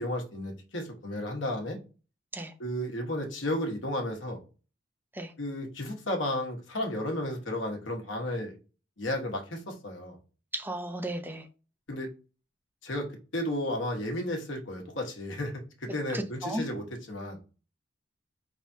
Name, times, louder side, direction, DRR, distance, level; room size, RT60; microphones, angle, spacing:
voice 1, 0.0-1.8 2.6-4.4 5.4-8.5 9.0-10.2 11.9-12.1 12.8-13.1 13.3-17.4, left 1 dB, 80° left, 1.3 m, -33 dB
voice 2, 10.5-11.4 16.1-16.6, right 1 dB, 10° right, 0.5 m, -34 dB
4.7 x 3.4 x 2.7 m
head